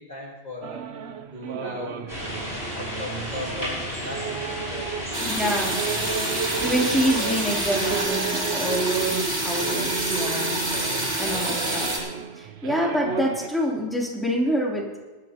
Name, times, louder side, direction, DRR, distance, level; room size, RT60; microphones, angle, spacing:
voice 1, 0.0-2.0 2.5-4.9 5.4-5.7 11.3-11.9, left 2 dB, 45° left, -2 dB, 2.1 m, -39 dB
sound 1, 0.6-13.5, right 6 dB, 90° right, 1.0 m, -33 dB
sound 2, 2.1-8.0, equal, 80° left, 6.1 m, -33 dB
sound 3, 5.1-12.0, right 1 dB, 65° right, 4.0 m, -27 dB
voice 2, 5.3-5.8 6.6-11.9 12.4-15.0, equal, ahead, -4 dB, 3.3 m, -27 dB
19.5 x 13.5 x 3.0 m, 1.3 s
omnidirectional pair, 1.0 m